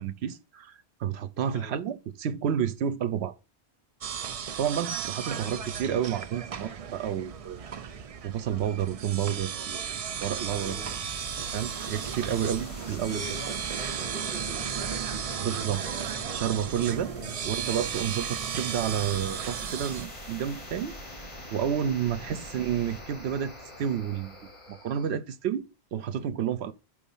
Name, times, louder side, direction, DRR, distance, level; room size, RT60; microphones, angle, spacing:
voice 1, 0.0-3.3 4.6-7.9 8.2-9.8 10.2-10.8 11.5-13.2 15.4-15.8 16.3-17.1 17.4-21.0 21.5-24.4 24.7-26.7, right 9 dB, 75° right, 0.9 m, -30 dB
sound 1, 4.0-20.1, right 8 dB, 55° right, 0.4 m, -35 dB
voice 2, 5.4-5.9 10.5-11.0 12.4-12.5 12.8-16.1 17.0-17.5, left 2 dB, 60° left, 2.0 m, -45 dB
sound 2, 9.8-25.1, left 1 dB, 30° left, 1.6 m, -44 dB
5.2 x 4.1 x 5.4 m
omnidirectional pair, 1.1 m